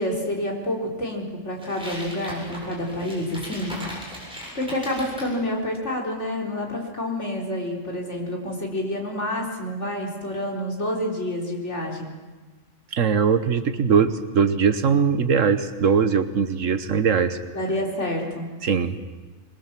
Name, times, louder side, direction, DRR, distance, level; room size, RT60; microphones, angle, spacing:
voice 1, 0.0-3.9 4.5-12.1 17.5-18.5, left 1 dB, 60° left, 0 dB, 4.5 m, -28 dB
sound 1, 1.6-5.3, equal, 5° right, 7.6 m, -38 dB
voice 2, 12.9-17.4 18.6-19.0, right 6 dB, 70° right, 11 dB, 1.5 m, -21 dB
24.5 x 21.5 x 7.6 m, 1.3 s
omnidirectional pair, 1.4 m